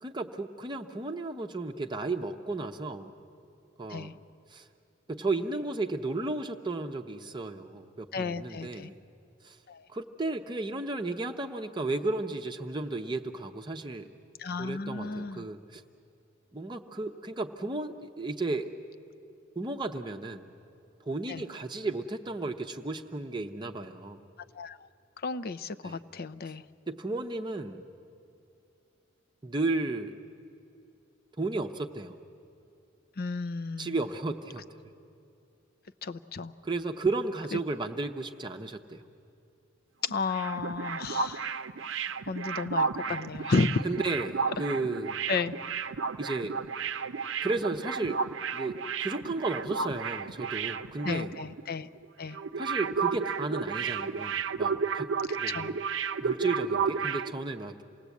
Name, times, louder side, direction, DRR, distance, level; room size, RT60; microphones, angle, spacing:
voice 1, 0.0-3.1 3.8-4.2 4.5-4.7 5.1-9.0 9.4-9.6 9.9-14.1 14.6-15.8 16.5-18.7 19.6-20.5 21.0-24.2 25.8-26.0 26.9-27.8 29.4-30.2 31.4-32.2 33.8-34.6 36.6-39.0 43.1-43.2 43.8-45.2 46.2-46.5 47.4-48.2 48.5-51.4 52.6-55.1 55.4-55.8 56.2-57.8, right 3 dB, 25° right, 4 dB, 0.7 m, -33 dB
voice 2, 8.1-8.9 9.7-9.8 14.4-15.5 21.3-21.4 24.5-24.8 25.2-26.6 33.2-34.0 36.0-36.5 37.5-37.6 40.0-41.5 42.3-43.9 45.3-45.5 51.0-51.9 52.2-52.4 55.5-55.7, left 4 dB, 50° left, 13 dB, 0.6 m, -32 dB
sound 1, 40.1-51.6 51.9-52.0 52.3-57.3, right 5 dB, 70° right, 0.6 m, -32 dB
27.5 x 18.5 x 8.3 m, 2.6 s
head